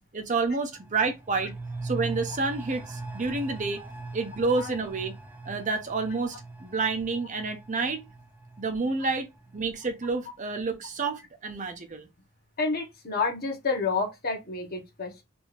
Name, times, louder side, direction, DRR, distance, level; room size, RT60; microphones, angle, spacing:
voice 1, 0.1-1.5 1.8-3.8 4.1-5.1 5.4-8.0 8.6-9.3 9.5-12.1, right 3 dB, 40° right, 0.8 m, -29 dB
sound 1, 0.7-10.1 10.5-10.6, right 3 dB, 10° right, 0.9 m, -41 dB
voice 2, 12.6-15.2, left 4 dB, 50° left, 1.4 m, -29 dB
4.3 x 2.8 x 3.3 m
head